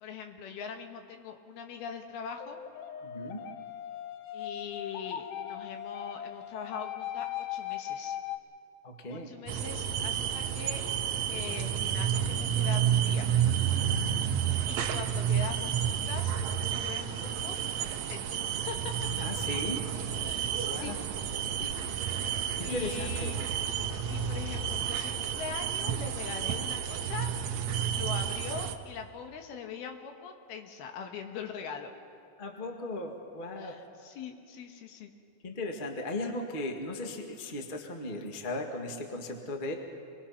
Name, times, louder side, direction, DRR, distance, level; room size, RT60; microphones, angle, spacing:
voice 1, 0.0-2.6 4.3-8.2 9.1-10.8 11.3-13.3 14.7-16.4 16.8-17.6 18.1-18.9 20.2-20.9 21.5-21.7 22.6-23.4 24.1-27.3 27.9-31.9 33.6-35.1, left 6 dB, 90° left, 4 dB, 3.4 m, -42 dB
sound 1, 2.3-8.4, left 11 dB, 75° left, 2.0 m, -39 dB
voice 2, 3.0-3.4 8.8-9.3 19.2-19.8 20.7-21.0 22.5-23.4 32.4-33.8 35.4-39.7, left 2 dB, 40° left, 3 dB, 0.7 m, -37 dB
sound 2, 9.5-28.8, right 8 dB, 70° right, 1.7 m, -30 dB
27.5 x 21.5 x 5.8 m, 2.4 s
omnidirectional pair, 4.3 m